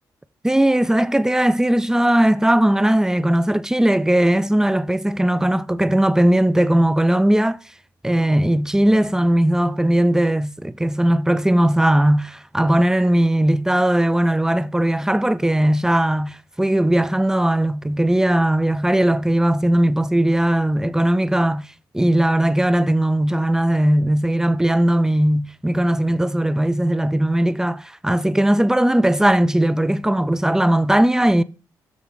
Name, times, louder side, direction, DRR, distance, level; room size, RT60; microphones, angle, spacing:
voice 1, 0.4-7.6 8.0-21.6 21.9-31.4, right 1 dB, 5° right, 0.5 m, -18 dB
7.9 x 6.4 x 4.8 m
supercardioid pair, 55°, 8 cm